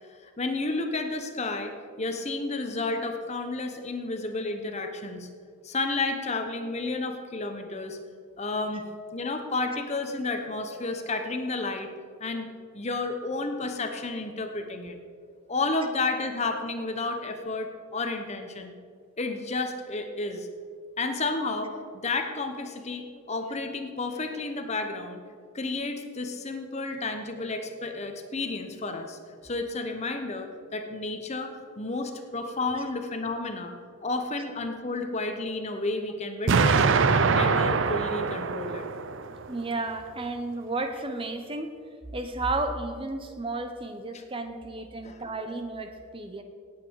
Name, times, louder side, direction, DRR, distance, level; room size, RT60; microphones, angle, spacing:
voice 1, 0.4-5.3 5.6-8.0 8.4-8.8 9.1-11.9 12.2-12.5 12.7-15.0 15.5-18.7 19.2-20.5 21.0-25.2 25.5-33.7 34.0-36.8 37.1-38.8 44.1-44.2 45.0-45.2, left 3 dB, 30° left, 6 dB, 1.0 m, -31 dB
Explosion, 36.5-39.5, right 4 dB, 55° right, 0.5 m, -23 dB
voice 2, 39.5-41.7 42.1-46.4, right 2 dB, 25° right, 7 dB, 0.7 m, -33 dB
18.0 x 8.5 x 4.7 m, 2.1 s
head